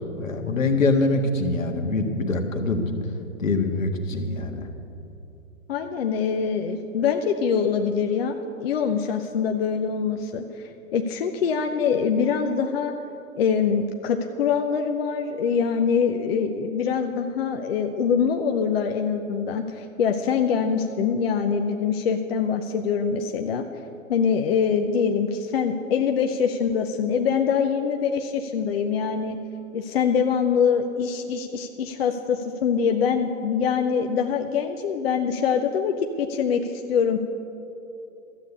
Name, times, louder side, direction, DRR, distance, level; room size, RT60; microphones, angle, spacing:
voice 1, 0.1-2.9 3.4-4.7, left 3 dB, 70° left, 4 dB, 1.7 m, -24 dB
voice 2, 5.7-13.0 13.3-23.6 24.1-29.4 29.7-37.2, left 6 dB, 45° left, 5 dB, 0.8 m, -24 dB
13.0 x 8.2 x 8.3 m, 2.8 s
figure-of-eight pair, 125°, 40 cm